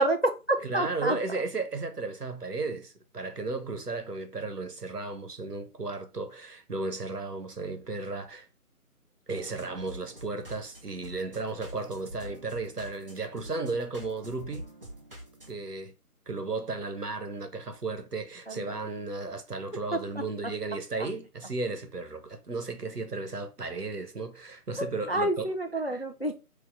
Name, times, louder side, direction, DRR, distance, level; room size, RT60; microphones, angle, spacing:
voice 1, 0.0-1.2 25.1-26.4, right 1 dB, 45° left, 0.4 m, -27 dB
voice 2, 0.6-8.5 9.3-14.7 15.5-15.9 16.3-25.5 25.8-26.0, right 3 dB, 85° right, 1.1 m, -34 dB
sound 1, 9.3-15.5, right 1 dB, 35° right, 1.0 m, -46 dB
3.6 x 2.9 x 4.0 m
figure-of-eight pair, 165°, 46 cm